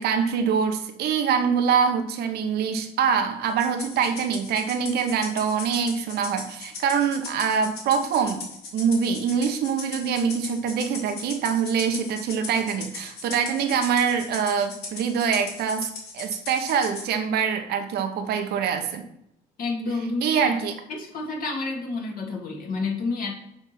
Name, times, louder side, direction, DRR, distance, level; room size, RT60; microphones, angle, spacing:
voice 1, 0.0-8.5 8.7-19.0 20.2-20.7, right 6 dB, 70° right, 7 dB, 1.0 m, -24 dB
Rattle (instrument), 3.6-17.1, left 4 dB, 75° left, 2.8 m, -38 dB
voice 2, 19.6-20.5 20.9-23.3, left 3 dB, 55° left, 0 dB, 2.1 m, -29 dB
7.1 x 3.5 x 5.9 m, 0.77 s
cardioid pair, 110°, 17 cm